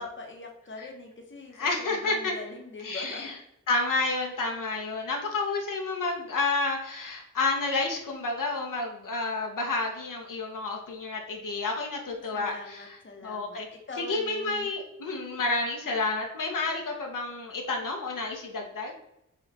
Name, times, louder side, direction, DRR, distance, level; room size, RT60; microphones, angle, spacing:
voice 1, 0.0-3.4 12.3-14.7, left 3 dB, 35° left, 2 dB, 0.9 m, -42 dB
voice 2, 1.6-2.3 2.8-3.4 3.7-13.0 13.2-13.7 14.0-18.9, left 3 dB, 75° left, 1 dB, 0.9 m, -30 dB
5.1 x 2.4 x 4.0 m, 0.83 s
cardioid pair, 60°, 32 cm